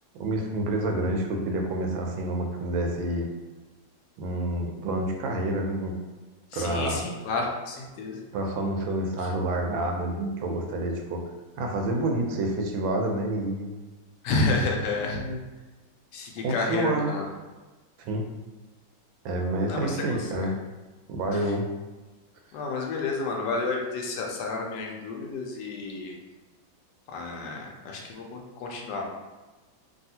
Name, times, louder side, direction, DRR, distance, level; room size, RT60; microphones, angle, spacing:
voice 1, 0.1-3.3 4.2-6.0 6.5-7.1 8.3-11.2 11.6-13.7 14.5-14.6 15.0-15.4 16.4-17.2 18.0-18.2 19.2-20.5 21.1-21.7, right 1 dB, 90° right, 2 dB, 1.3 m, -28 dB
voice 2, 6.5-8.2 14.2-15.2 16.1-17.3 19.7-19.9 20.3-20.5 22.5-26.1 27.1-29.2, left 3 dB, 75° left, 0 dB, 1.1 m, -30 dB
3.4 x 2.3 x 2.7 m, 1.2 s
omnidirectional pair, 2.1 m